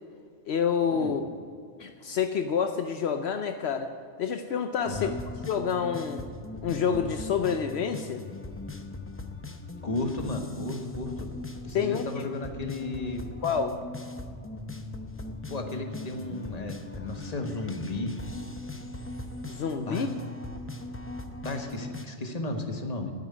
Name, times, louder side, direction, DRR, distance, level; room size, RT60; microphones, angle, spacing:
voice 1, 0.5-1.2 1.8-3.9 4.2-5.1 5.5-6.2 6.6-8.2 11.7-12.3 13.4-13.8 19.5-20.1, left 7 dB, 75° left, 7 dB, 0.9 m, -28 dB
sound 1, 4.8-22.0, left 2 dB, 15° left, 0.5 m, -39 dB
voice 2, 9.8-11.3 11.6-13.3 15.5-18.1 19.9-20.1 21.4-23.1, left 2 dB, 35° left, 4 dB, 1.4 m, -34 dB
9.6 x 9.2 x 9.6 m, 2.2 s
omnidirectional pair, 1.1 m